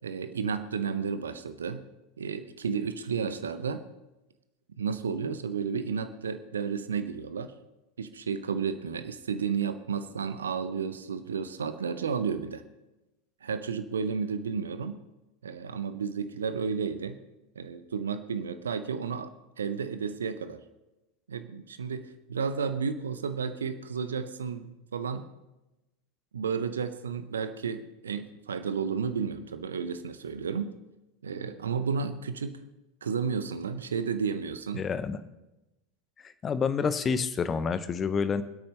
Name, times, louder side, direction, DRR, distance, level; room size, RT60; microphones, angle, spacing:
voice 1, 0.0-1.8 2.2-3.8 4.8-7.5 8.0-12.6 13.4-15.0 15.4-17.2 17.6-20.6 21.3-25.3 26.3-30.7 31.2-32.6 33.0-34.9, right 6 dB, 70° right, 11 dB, 0.7 m, -32 dB
voice 2, 34.8-35.2 36.2-38.4, left 6 dB, 25° left, 13 dB, 0.8 m, -28 dB
25.5 x 8.6 x 3.3 m, 0.99 s
figure-of-eight pair, 80°, 0 cm